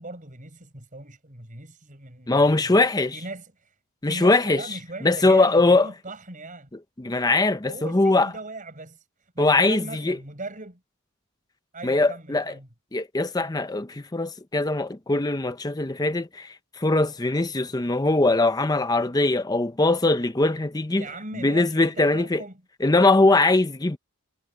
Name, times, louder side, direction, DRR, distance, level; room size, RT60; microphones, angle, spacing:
voice 1, 0.0-2.8 3.1-3.7 4.0-6.7 7.7-10.8 11.7-12.7 20.9-22.6, right 2 dB, 35° right, 5.8 m, -39 dB
voice 2, 2.3-3.2 4.0-4.6 5.0-5.9 7.0-8.3 9.4-10.2 11.8-12.5 12.9-21.0 21.4-22.4 22.8-24.0, left 2 dB, 15° left, 0.6 m, -21 dB
head